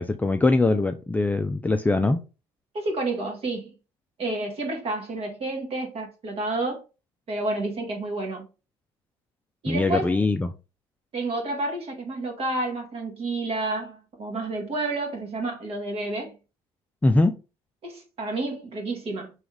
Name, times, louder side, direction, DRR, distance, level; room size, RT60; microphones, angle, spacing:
voice 1, 0.0-2.2 9.7-10.5 17.0-17.3, left 2 dB, 10° left, 0.4 m, -22 dB
voice 2, 2.7-3.7 4.2-6.8 7.3-8.4 9.6-10.2 11.1-16.3 17.8-19.3, right 2 dB, 50° right, 1.4 m, -30 dB
3.5 x 3.1 x 3.1 m
supercardioid pair, 70°, 13 cm